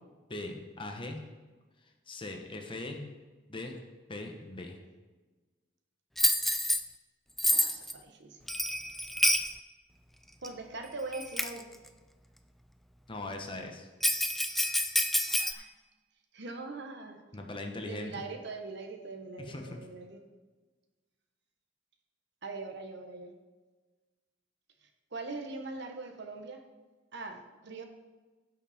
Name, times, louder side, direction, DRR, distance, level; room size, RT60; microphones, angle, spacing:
voice 1, 0.3-1.2 2.1-3.1 3.5-3.8 4.1-4.8 13.1-13.9 17.3-18.2 19.4-19.8, left 2 dB, 25° left, 3 dB, 1.1 m, -40 dB
Bell, 6.2-6.8 7.4-7.9 8.5-9.5 10.4-10.5 11.1-11.6 14.0-15.5, left 1 dB, ahead, 0.4 m, -28 dB
voice 2, 7.5-8.4 10.4-11.7 15.3-15.7 16.3-17.2 17.9-20.2 22.4-23.3 25.1-26.6 27.1-27.8, right 3 dB, 60° right, 4 dB, 1.2 m, -42 dB
16.0 x 5.7 x 4.3 m, 1.3 s
head